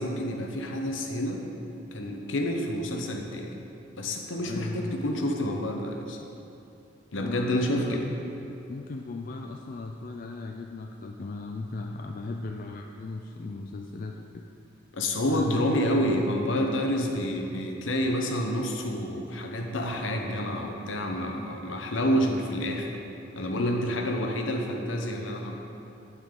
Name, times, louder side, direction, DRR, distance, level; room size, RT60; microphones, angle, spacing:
voice 1, 0.0-1.4 1.9-3.6 4.0-6.2 7.1-8.0 14.9-23.0 23.4-25.6, equal, 70° left, 2 dB, 0.9 m, -28 dB
voice 2, 4.4-5.0 7.2-8.2 8.7-14.4 15.3-15.7 23.6-23.8, left 3 dB, 45° left, 2 dB, 0.4 m, -36 dB
9.0 x 8.0 x 3.8 m, 2.8 s
head